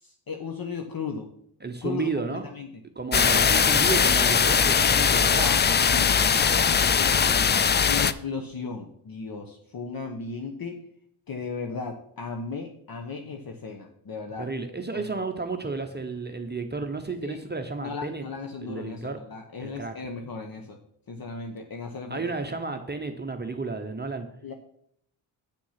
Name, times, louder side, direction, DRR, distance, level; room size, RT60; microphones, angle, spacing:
voice 1, 0.0-1.3 1.8-2.7 5.1-7.5 7.9-10.8 11.3-14.5 14.9-15.1 17.2-17.4 17.8-20.8 21.1-22.3 24.4-24.5, left 5 dB, 45° left, 3 dB, 1.1 m, -36 dB
voice 2, 1.6-2.5 3.0-5.6 14.4-18.2 18.6-19.2 19.6-19.9 22.1-24.3, right 4 dB, 20° right, 5 dB, 0.9 m, -32 dB
sound 1, 3.1-8.1, left 6 dB, 25° left, 0.3 m, -20 dB
8.7 x 5.9 x 5.8 m, 0.69 s
cardioid pair, 75°, 50 cm